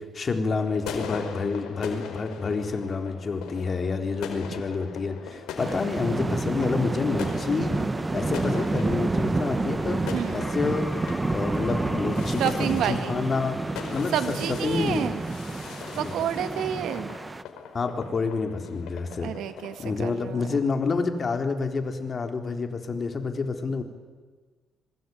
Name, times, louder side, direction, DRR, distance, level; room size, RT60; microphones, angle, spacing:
voice 1, 0.1-7.8 8.1-10.9 11.3-13.6 13.9-15.0 15.9-16.2 17.7-19.3 19.8-23.8, left 4 dB, 40° left, 6 dB, 3.8 m, -28 dB
sound 1, 0.6-20.0, left 6 dB, 85° left, 4.7 m, -40 dB
sound 2, 5.6-17.4, right 3 dB, 20° right, 1.1 m, -29 dB
sound 3, 10.4-14.6, left 1 dB, 15° left, 2.0 m, -43 dB
voice 2, 12.3-13.2 14.1-15.2 16.0-17.2 19.2-20.6, right 10 dB, 80° right, 11 dB, 1.8 m, -30 dB
25.5 x 23.0 x 9.5 m, 1.4 s
cardioid pair, 90°, 0 cm